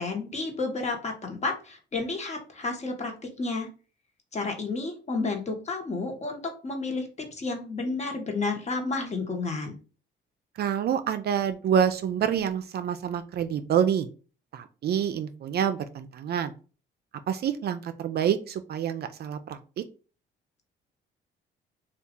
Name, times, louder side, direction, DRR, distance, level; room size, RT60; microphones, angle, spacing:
voice 1, 0.0-3.7 4.3-9.8, left 3 dB, 35° left, 3 dB, 1.0 m, -31 dB
voice 2, 10.6-14.1 14.5-16.5 17.3-19.8, right 8 dB, 55° right, 10 dB, 0.4 m, -27 dB
2.8 x 2.3 x 3.6 m, 0.36 s
cardioid pair, 90°, 20 cm